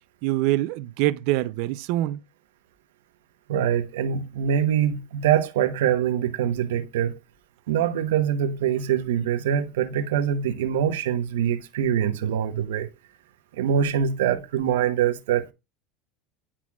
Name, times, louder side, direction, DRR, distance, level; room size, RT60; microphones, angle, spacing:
voice 1, 0.2-2.2, right 16 dB, 65° right, 0.4 m, -24 dB
voice 2, 3.5-7.2 7.7-12.9 13.5-15.5, right 9 dB, 90° right, 0.9 m, -24 dB
9.8 x 4.3 x 2.3 m
supercardioid pair, 125°, 0 cm